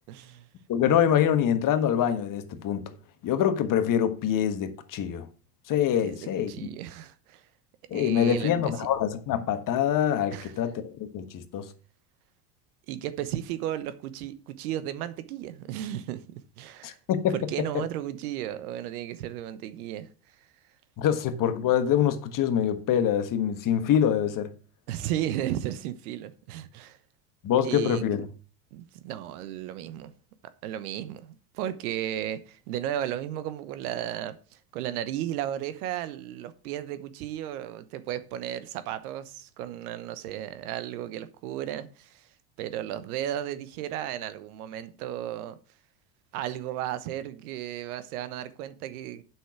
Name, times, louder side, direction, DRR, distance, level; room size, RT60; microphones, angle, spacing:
voice 1, 0.1-0.4 6.0-7.4 7.9-8.9 10.3-10.5 12.9-17.0 17.3-20.1 24.9-27.0 27.6-28.0 28.7-30.1 30.6-42.3 42.6-45.6 46.3-49.2, right 12 dB, 75° right, 1.1 m, -34 dB
voice 2, 0.7-2.8 3.2-5.3 5.7-6.5 7.9-11.7 16.8-17.8 21.0-24.5 27.4-28.2, left 9 dB, 45° left, 1.5 m, -25 dB
8.2 x 6.2 x 6.0 m
supercardioid pair, 100°, 45 cm